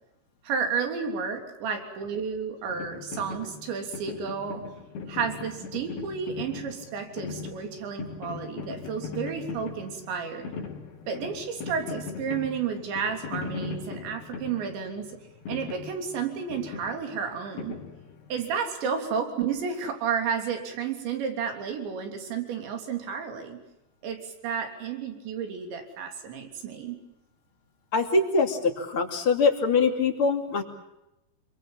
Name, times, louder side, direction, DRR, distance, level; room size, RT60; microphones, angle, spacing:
voice 1, 0.4-4.6 5.1-10.5 11.1-15.1 15.5-17.8 18.3-23.6 24.0-27.0, right 6 dB, 90° right, 5 dB, 5.7 m, -32 dB
sound 1, 2.7-18.4, left 5 dB, 65° left, 5.3 m, -39 dB
voice 2, 27.9-30.6, left 4 dB, 35° left, 4 dB, 2.9 m, -23 dB
27.5 x 24.0 x 7.3 m, 0.90 s
omnidirectional pair, 5.0 m